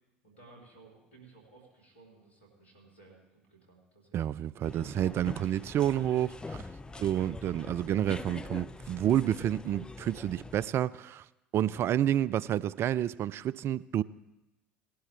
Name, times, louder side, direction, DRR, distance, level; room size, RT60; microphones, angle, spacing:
voice 1, 0.2-4.4 6.8-7.1 11.6-11.8, right 3 dB, 85° left, 3.2 m, -57 dB
voice 2, 4.1-6.6 7.0-11.3 11.5-14.0, right 11 dB, 45° right, 0.4 m, -29 dB
sound 1, 4.6-10.7, left 3 dB, 15° left, 0.5 m, -44 dB
18.0 x 11.5 x 3.3 m
figure-of-eight pair, 65°, 6 cm